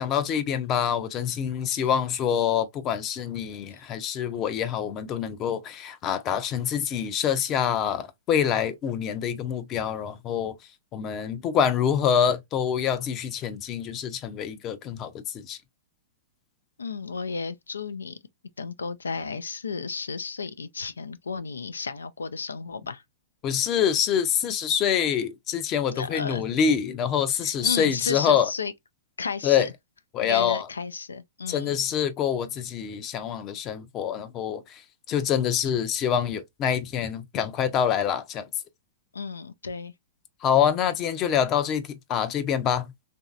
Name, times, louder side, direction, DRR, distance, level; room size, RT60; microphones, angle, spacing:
voice 1, 0.0-10.6 10.9-15.6 23.4-28.5 29.4-29.7 30.1-30.7 31.5-38.5 40.4-42.9, left 8 dB, 35° left, 0.6 m, -26 dB
voice 2, 16.8-18.2 18.6-23.0 25.9-26.4 27.4-28.7 29.2-29.7 30.2-31.8 39.1-39.9, left 5 dB, 90° left, 0.4 m, -33 dB
3.1 x 2.6 x 2.3 m
hypercardioid pair, 115°, 0 cm